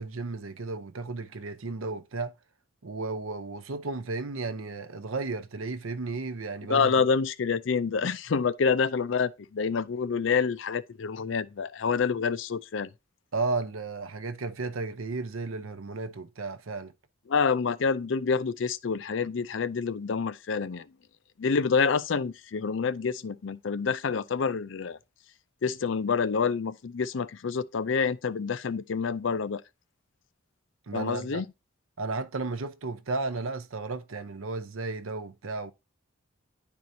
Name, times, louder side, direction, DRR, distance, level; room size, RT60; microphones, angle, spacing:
voice 1, 0.0-2.3 2.8-6.9 13.3-16.9 30.9-31.4 32.0-35.7, right 3 dB, 85° right, 0.7 m, -34 dB
voice 2, 6.7-12.9 17.3-20.8 21.4-25.0 25.6-29.6 30.9-31.5, left 5 dB, 65° left, 0.5 m, -27 dB
10.5 x 4.6 x 2.7 m
head